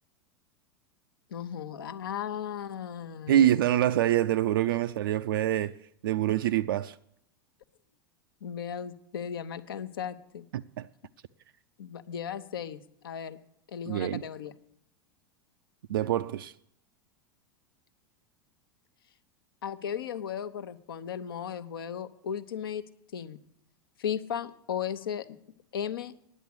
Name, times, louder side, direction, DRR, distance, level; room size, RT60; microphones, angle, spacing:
voice 1, 1.3-3.4 8.4-10.4 11.8-13.4 13.7-14.5 19.6-22.8 23.1-23.4 24.0-25.3 25.7-26.1, left 8 dB, 65° left, 0.8 m, -36 dB
voice 2, 3.3-5.8 6.0-7.0 10.5-10.9 13.9-14.2 15.9-16.5, right 12 dB, 60° right, 0.4 m, -25 dB
10.0 x 8.4 x 8.2 m
figure-of-eight pair, 85°, 13 cm